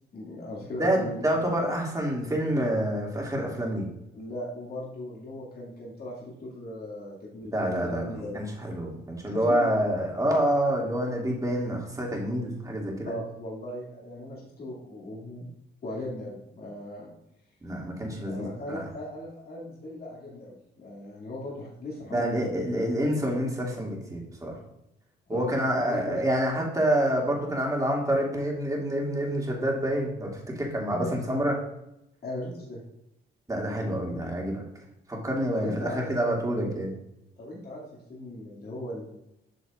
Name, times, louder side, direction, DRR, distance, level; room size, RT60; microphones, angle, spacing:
voice 1, 0.1-1.2 4.1-8.4 9.3-9.6 13.0-15.5 15.8-17.1 18.2-22.5 25.3-26.2 30.9-31.1 32.2-32.8 35.5-36.1 37.4-39.1, left 1 dB, 50° left, -5 dB, 2.3 m, -38 dB
voice 2, 0.8-3.9 7.5-13.1 17.6-18.8 22.0-24.6 25.3-30.3 30.6-31.5 33.5-34.6 35.1-36.9, right 1 dB, 15° right, -2 dB, 2.3 m, -27 dB
8.0 x 6.3 x 2.4 m, 0.84 s
cardioid pair, 90°, 20 cm